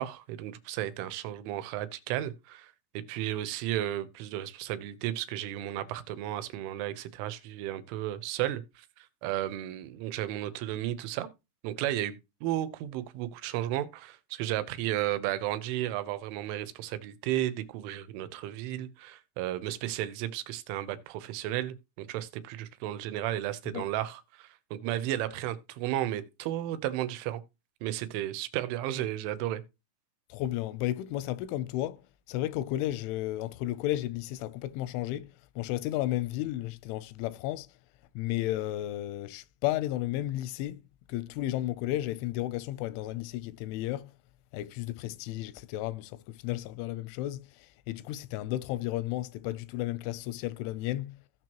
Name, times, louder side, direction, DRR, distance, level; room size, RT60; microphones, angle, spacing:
voice 1, 0.0-2.7 3.1-11.3 11.6-12.2 12.4-27.4 27.8-29.6, right 13 dB, 85° right, 3.3 m, -33 dB
voice 2, 30.3-32.0 32.3-37.7 38.2-40.8 41.1-44.1 44.5-51.2, left 15 dB, 90° left, 3.1 m, -33 dB
16.5 x 6.2 x 3.0 m
omnidirectional pair, 5.4 m